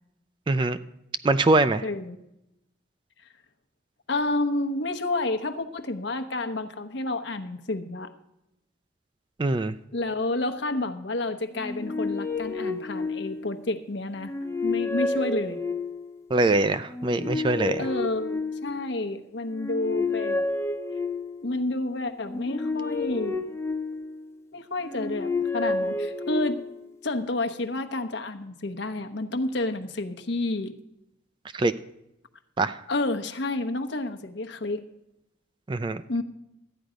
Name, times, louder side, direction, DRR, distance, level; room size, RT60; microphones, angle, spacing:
voice 1, 0.5-0.8 1.2-1.8 9.4-9.7 16.3-17.9 31.5-31.7 32.6-32.8 35.7-36.0, right 2 dB, 25° right, 13 dB, 0.3 m, -23 dB
voice 2, 1.8-2.2 4.1-8.1 9.9-14.3 14.6-15.6 17.8-20.4 21.4-23.4 24.5-26.6 27.0-30.7 32.9-34.8 36.1-36.2, left 2 dB, 60° left, 7 dB, 0.9 m, -30 dB
sound 1, 11.5-13.6 14.1-16.2 16.8-19.0 19.5-21.5 22.2-24.3 24.8-26.8, left 3 dB, 15° left, 0.8 m, -30 dB
13.0 x 9.3 x 5.0 m, 0.86 s
head